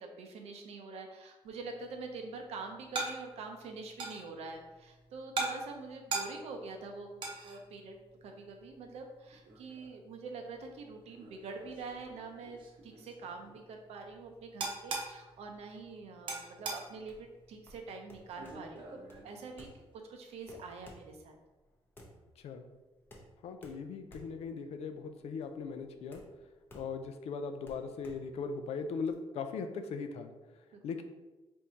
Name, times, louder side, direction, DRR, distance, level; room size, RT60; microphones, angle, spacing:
voice 1, 0.0-19.8 20.1-21.4 30.7-30.8, right 4 dB, 90° right, 3 dB, 0.6 m, -45 dB
sound 1, 1.4-20.0, right 3 dB, 50° right, 0.7 m, -44 dB
sound 2, 17.1-29.1, equal, 20° left, 0.6 m, -56 dB
voice 2, 23.4-26.2 26.7-30.3 30.8-31.0, left 5 dB, 85° left, 7 dB, 0.4 m, -39 dB
3.6 x 2.7 x 4.3 m, 1.2 s
wide cardioid pair, 165°, 10 cm